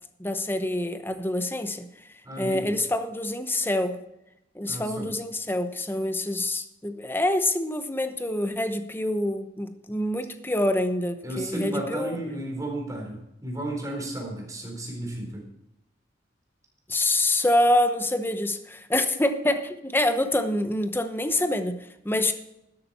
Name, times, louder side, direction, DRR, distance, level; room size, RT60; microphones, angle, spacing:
voice 1, 0.2-1.9 2.4-4.0 4.5-12.2 16.9-22.3, left 1 dB, 10° left, 9 dB, 1.0 m, -26 dB
voice 2, 2.2-2.8 4.7-5.1 11.2-15.5, right 1 dB, 20° right, -1 dB, 4.1 m, -33 dB
12.5 x 11.5 x 4.3 m, 0.86 s
head